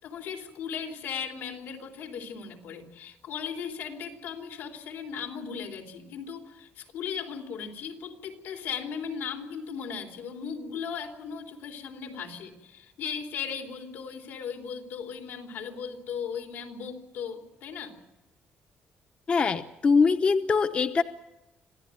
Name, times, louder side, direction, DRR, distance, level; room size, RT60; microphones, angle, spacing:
voice 1, 0.0-17.9, left 6 dB, 90° left, 3 dB, 3.8 m, -37 dB
voice 2, 19.3-21.0, left 5 dB, 35° left, 8 dB, 0.8 m, -23 dB
26.0 x 16.0 x 9.1 m, 1.0 s
cardioid pair, 160°, 4 cm